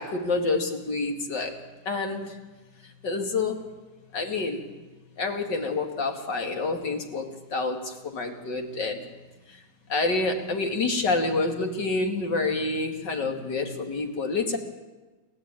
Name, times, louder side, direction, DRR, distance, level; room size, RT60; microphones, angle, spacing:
voice 1, 0.0-1.6 1.8-2.4 2.8-3.7 4.1-4.7 5.2-9.1 9.5-9.6 9.9-14.6, left 3 dB, 60° left, 3 dB, 3.0 m, -28 dB
29.0 x 14.0 x 9.0 m, 1.2 s
omnidirectional pair, 2.2 m